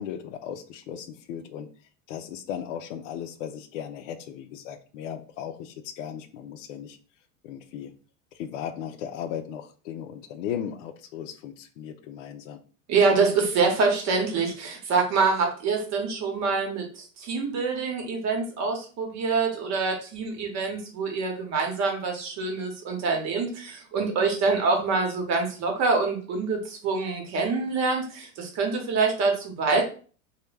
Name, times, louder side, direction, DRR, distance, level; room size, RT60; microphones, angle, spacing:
voice 1, 0.0-1.7 2.1-7.0 7.4-7.9 8.3-12.6, left 9 dB, 70° left, 9 dB, 0.5 m, -36 dB
voice 2, 12.9-29.8, right 4 dB, 45° right, 2 dB, 1.0 m, -25 dB
2.2 x 2.1 x 3.2 m, 0.39 s
hypercardioid pair, 105°, 39 cm